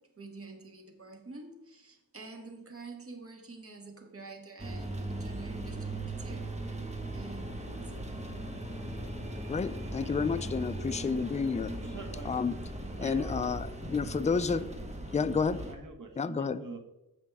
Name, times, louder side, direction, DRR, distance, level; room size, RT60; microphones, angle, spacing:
voice 1, 0.0-6.8 7.1-8.1 11.7-11.8, right 3 dB, 40° right, 4 dB, 1.5 m, -48 dB
sound 1, 4.6-15.7, right 1 dB, 20° right, 1.3 m, -38 dB
voice 2, 9.5-11.7 12.2-12.6 13.0-14.7 15.1-15.6 16.2-16.6, left 5 dB, 20° left, 12 dB, 0.4 m, -30 dB
voice 3, 11.8-12.4 13.0-13.5 15.6-16.8, right 3 dB, 65° right, 4 dB, 1.5 m, -45 dB
15.0 x 5.0 x 3.5 m, 0.93 s
wide cardioid pair, 110°, 35 cm